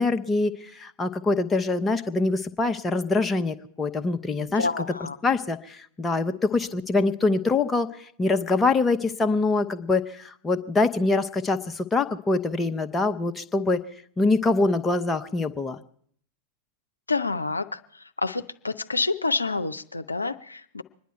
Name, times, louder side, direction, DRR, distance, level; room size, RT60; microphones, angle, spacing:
voice 1, 0.0-4.8 5.2-13.8 14.2-15.8, left 3 dB, 15° left, 7 dB, 0.8 m, -24 dB
voice 2, 4.6-5.2 17.1-17.8 18.2-20.8, left 3 dB, 80° left, 9 dB, 0.5 m, -28 dB
25.0 x 10.5 x 4.5 m, 0.63 s
figure-of-eight pair, 90°, 0 cm